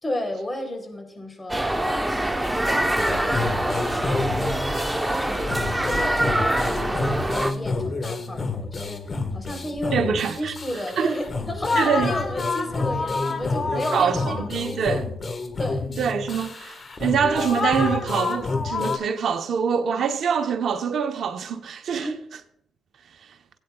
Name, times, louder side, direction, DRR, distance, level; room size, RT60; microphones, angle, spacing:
voice 1, 0.0-4.9 5.2-15.0 15.6-15.9 21.9-22.2, left 1 dB, 25° left, 3.6 m, -34 dB
sound 1, 1.5-7.5, right 1 dB, 10° right, 1.0 m, -24 dB
sound 2, 3.0-19.0, left 3 dB, 45° left, 1.6 m, -28 dB
voice 2, 9.9-11.1 11.8-12.1 13.7-15.0 16.0-22.1, right 6 dB, 65° right, 1.0 m, -25 dB
17.0 x 9.0 x 2.4 m
supercardioid pair, 55°, 0 cm